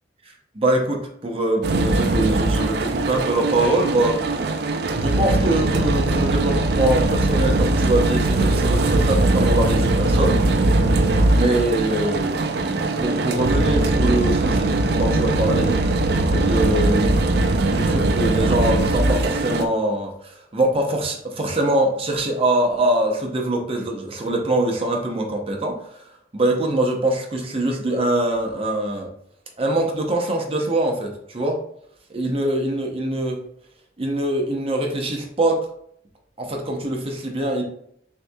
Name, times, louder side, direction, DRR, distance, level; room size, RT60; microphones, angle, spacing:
voice 1, 0.5-4.4 5.0-10.4 11.3-26.0 26.3-29.1 29.6-31.6 32.1-33.4 34.0-35.6 36.4-37.6, right 1 dB, 30° right, 2 dB, 0.8 m, -23 dB
sound 1, 1.6-19.7, right 2 dB, 60° right, 0.4 m, -20 dB
6.4 x 2.7 x 2.3 m, 0.68 s
head